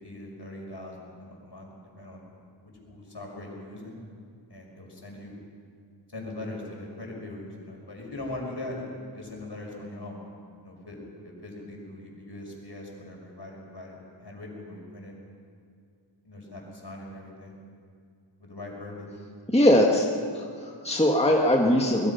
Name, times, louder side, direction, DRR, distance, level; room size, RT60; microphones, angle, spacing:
voice 1, 0.0-2.3 2.6-4.0 4.5-5.3 6.1-10.2 10.6-11.0 11.2-15.1 16.2-17.6 18.4-19.1, left 1 dB, 60° left, -1 dB, 5.8 m, -41 dB
voice 2, 19.5-20.1 20.3-22.1, left 1 dB, 15° left, 0 dB, 1.8 m, -21 dB
24.0 x 21.5 x 5.8 m, 2.2 s
wide cardioid pair, 50°, 46 cm